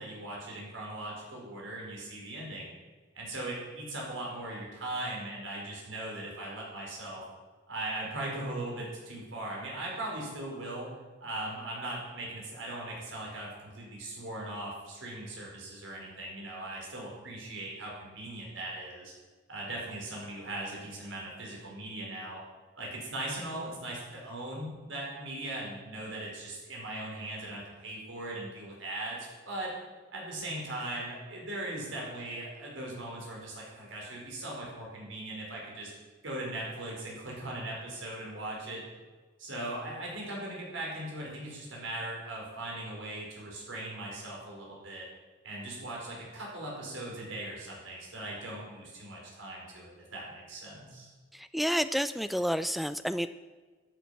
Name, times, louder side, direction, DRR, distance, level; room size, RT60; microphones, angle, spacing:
voice 1, 0.0-2.7 3.1-7.2 7.7-10.9 11.2-19.1 19.5-22.4 22.8-29.7 30.1-35.9 36.2-38.8 39.4-45.0 45.4-51.1, right 1 dB, 80° right, -3 dB, 5.0 m, -39 dB
voice 2, 51.3-53.3, equal, ahead, 12 dB, 0.3 m, -30 dB
14.0 x 8.4 x 6.0 m, 1.4 s
head